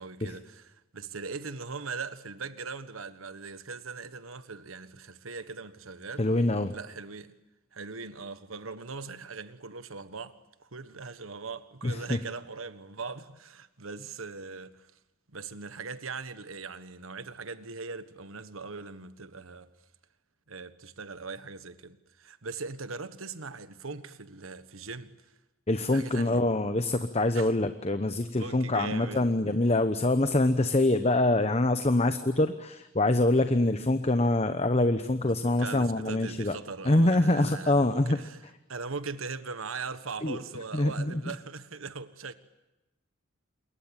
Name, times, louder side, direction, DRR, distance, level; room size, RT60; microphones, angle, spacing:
voice 1, 0.0-6.3 6.7-7.3 7.7-14.9 15.3-19.7 20.5-25.1 25.9-26.4 27.3-27.5 28.4-29.2 35.4-38.4 38.7-42.3, right 4 dB, 90° right, 1.4 m, -40 dB
voice 2, 6.2-6.7 11.8-12.2 25.7-36.6 36.8-38.2 40.2-40.4 40.7-41.2, left 2 dB, 30° left, 1.0 m, -25 dB
28.0 x 22.5 x 9.0 m
head